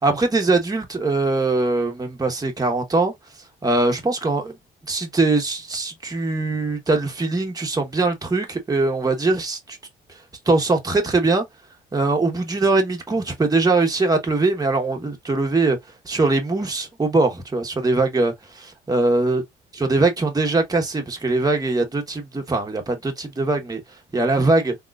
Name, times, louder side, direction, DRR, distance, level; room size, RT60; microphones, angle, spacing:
voice 1, 0.0-3.1 3.6-4.5 4.9-9.8 10.5-11.4 11.9-15.8 16.0-19.4 19.7-23.8 24.1-24.7, right 3 dB, 20° right, 1.2 m, -21 dB
3.7 x 3.0 x 2.5 m
cardioid pair, 90°, 20 cm